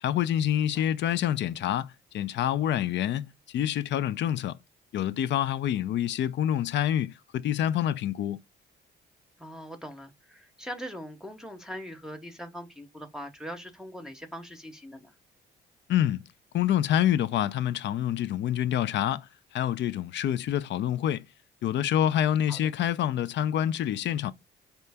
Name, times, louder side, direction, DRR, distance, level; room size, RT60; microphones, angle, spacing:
voice 1, 0.0-4.6 4.9-8.4 15.9-16.2 16.5-21.2 21.6-24.3, left 11 dB, 65° left, 0.4 m, -27 dB
voice 2, 0.5-0.9 9.4-15.1 22.5-22.6, equal, 5° right, 0.8 m, -41 dB
4.4 x 2.9 x 3.4 m
cardioid pair, 90°, 20 cm